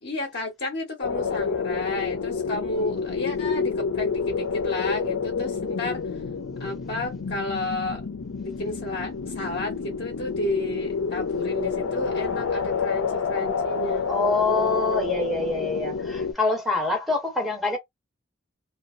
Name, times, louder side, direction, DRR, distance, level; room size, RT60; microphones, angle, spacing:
voice 1, 0.0-6.0 6.6-8.0 8.6-14.1, left 2 dB, 50° left, 0.8 m, -31 dB
sound 1, 1.0-16.3, left 5 dB, 85° left, 0.6 m, -28 dB
voice 2, 14.1-17.8, left 2 dB, ahead, 0.7 m, -25 dB
2.7 x 2.4 x 2.4 m
head